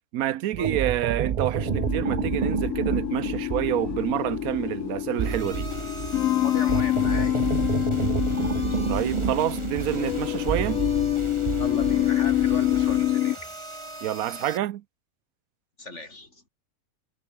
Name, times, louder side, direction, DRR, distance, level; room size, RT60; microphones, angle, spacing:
voice 1, 0.1-5.7 8.9-10.8 14.0-14.8, right 13 dB, 85° right, 1.1 m, -27 dB
sound 1, 0.5-13.2, right 8 dB, 60° right, 0.4 m, -30 dB
sound 2, 1.5-13.4, left 13 dB, 70° left, 1.0 m, -26 dB
sound 3, 5.2-14.6, right 2 dB, 20° right, 2.4 m, -41 dB
voice 2, 6.4-7.4 8.7-8.8 11.6-13.5 15.8-16.4, left 2 dB, 55° left, 4.8 m, -36 dB
omnidirectional pair, 1.5 m